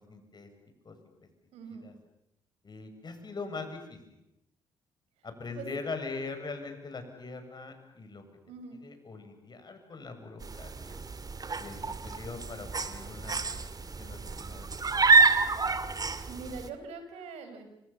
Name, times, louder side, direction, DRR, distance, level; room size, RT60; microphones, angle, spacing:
voice 1, 0.1-0.5 0.8-1.0 1.7-1.9 2.6-4.0 5.2-8.2 8.8-11.0 11.6-11.8 12.0-13.3 14.0-14.7 14.9-15.3, left 4 dB, 40° left, 7 dB, 7.4 m, -41 dB
voice 2, 1.5-1.8 5.5-5.7 8.5-8.8 16.3-17.7, right 4 dB, 70° right, 8 dB, 5.0 m, -42 dB
sound 1, 10.4-16.7, right 4 dB, 35° right, 2.4 m, -28 dB
30.0 x 27.0 x 7.4 m, 0.87 s
hypercardioid pair, 45°, 11 cm